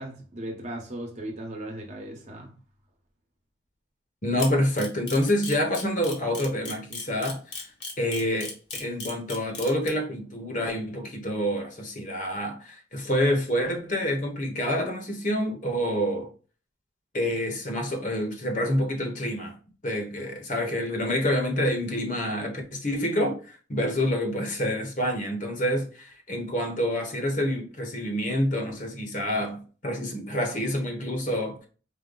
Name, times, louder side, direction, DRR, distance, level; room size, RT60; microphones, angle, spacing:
voice 1, 0.0-2.5, right 1 dB, 35° right, 1.0 m, -37 dB
voice 2, 4.2-7.6 8.0-8.5 8.8-16.3 17.1-19.6 19.8-31.7, equal, 40° left, 1.0 m, -27 dB
Camera, 4.4-9.9, left 4 dB, 70° left, 1.4 m, -36 dB
5.0 x 2.1 x 3.8 m
head